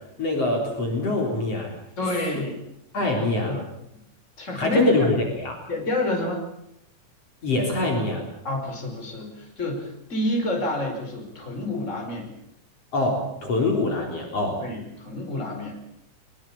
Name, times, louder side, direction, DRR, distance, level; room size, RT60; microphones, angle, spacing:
voice 1, 0.2-1.7 2.9-3.5 4.5-5.5 7.4-8.2 12.9-14.6, left 2 dB, 50° left, 0 dB, 5.0 m, -24 dB
voice 2, 2.0-2.5 3.0-3.7 3.9-4.0 4.4-5.1 5.7-6.4 8.4-12.3 14.6-15.9, left 1 dB, 20° left, 2 dB, 5.4 m, -29 dB
23.0 x 22.0 x 7.3 m, 0.77 s
omnidirectional pair, 3.5 m